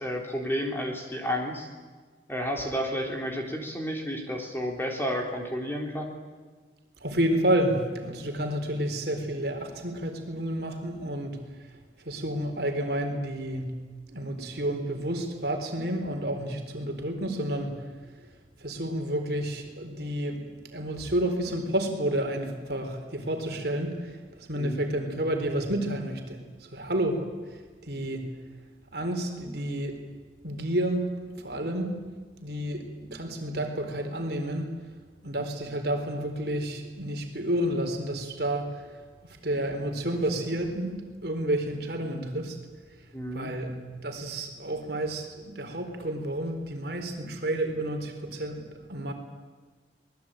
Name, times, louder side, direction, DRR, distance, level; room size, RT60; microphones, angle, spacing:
voice 1, 0.0-1.7 2.3-6.1 24.6-24.8 43.1-43.5, equal, 10° left, 1 dB, 3.9 m, -31 dB
voice 2, 7.0-13.8 14.1-18.3 18.6-28.4 28.9-30.0 30.4-31.1 31.3-32.0 32.4-34.7 35.2-42.6 43.3-49.1, right 1 dB, 60° right, 4 dB, 4.1 m, -30 dB
26.0 x 20.5 x 9.0 m, 1.4 s
head